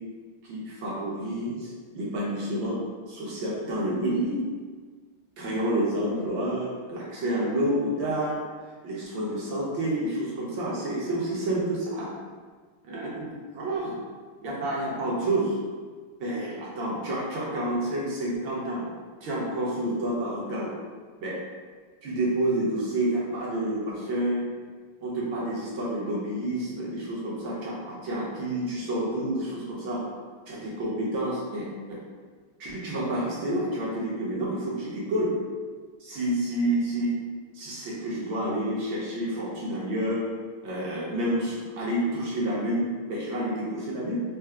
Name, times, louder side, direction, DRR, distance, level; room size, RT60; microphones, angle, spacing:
voice 1, 0.4-2.8 3.1-4.4 5.4-8.4 8.8-12.1 12.9-13.3 13.5-13.9 14.4-15.6 16.2-18.8 19.2-20.7 21.2-21.4 22.0-24.5 25.0-30.0 30.5-32.0 32.6-35.3 36.0-37.1 37.5-40.2 40.6-44.2, right 1 dB, 65° right, -5 dB, 1.5 m, -29 dB
4.4 x 2.0 x 3.5 m, 1.5 s
omnidirectional pair, 2.4 m